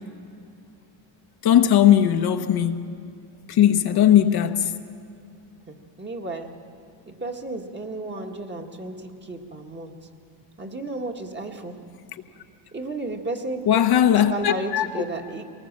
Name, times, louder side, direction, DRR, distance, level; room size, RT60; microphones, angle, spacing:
voice 1, 1.4-2.9 3.5-4.7 13.7-15.0, left 10 dB, 55° left, 1.0 m, -18 dB
voice 2, 5.7-6.5 7.1-9.9 10.6-11.8 12.7-15.4, right 2 dB, 25° right, 1.7 m, -33 dB
23.0 x 19.5 x 7.4 m
cardioid pair, 115°, 46 cm